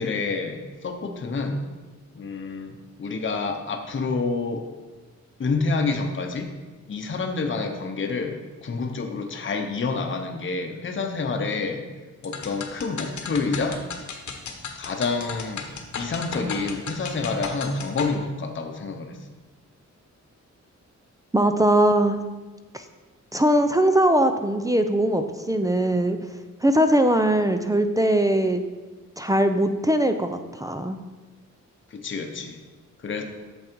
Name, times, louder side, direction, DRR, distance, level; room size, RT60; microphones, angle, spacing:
voice 1, 0.0-1.6 2.2-4.7 5.4-6.5 6.9-11.8 12.2-13.8 14.8-15.7 16.0-19.2 31.9-32.6 33.0-33.2, left 4 dB, 40° left, 3 dB, 0.9 m, -28 dB
sound 1, 12.2-18.2, left 5 dB, 70° left, 1.1 m, -35 dB
voice 2, 21.3-22.2 22.7-22.8 23.3-26.2 26.6-28.6 29.2-31.0, right 1 dB, 10° right, 7 dB, 0.4 m, -21 dB
8.5 x 7.0 x 4.6 m, 1.2 s
wide cardioid pair, 160°, 30 cm